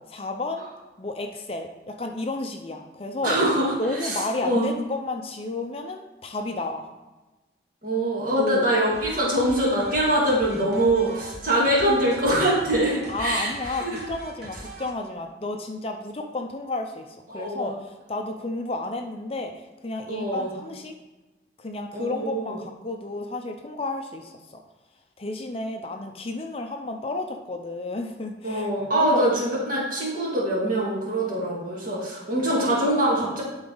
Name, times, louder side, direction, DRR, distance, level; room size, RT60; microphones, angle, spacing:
voice 1, 0.1-0.7 1.0-3.4 3.8-6.8 8.4-8.7 13.1-20.9 21.6-24.3 25.2-29.2, left 2 dB, 30° left, 4 dB, 0.5 m, -32 dB
voice 2, 3.2-4.7 7.8-14.1 17.3-17.7 20.1-20.5 21.9-22.6 28.4-33.4, right 1 dB, 50° right, -5 dB, 2.3 m, -24 dB
sound 1, 8.9-14.9, right 2 dB, 65° right, 1.3 m, -41 dB
11.0 x 4.0 x 3.9 m, 1.1 s
head